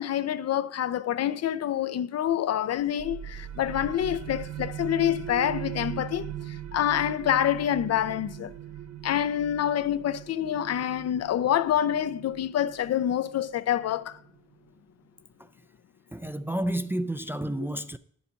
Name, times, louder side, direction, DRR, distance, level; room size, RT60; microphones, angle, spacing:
voice 1, 0.0-6.3 6.7-8.5 9.0-14.2, left 11 dB, 55° left, 0.6 m, -27 dB
sound 1, 3.0-14.4, right 11 dB, 60° right, 0.6 m, -40 dB
voice 2, 16.1-18.0, right 1 dB, 5° right, 0.4 m, -31 dB
9.0 x 7.1 x 5.1 m
cardioid pair, 90°, 30 cm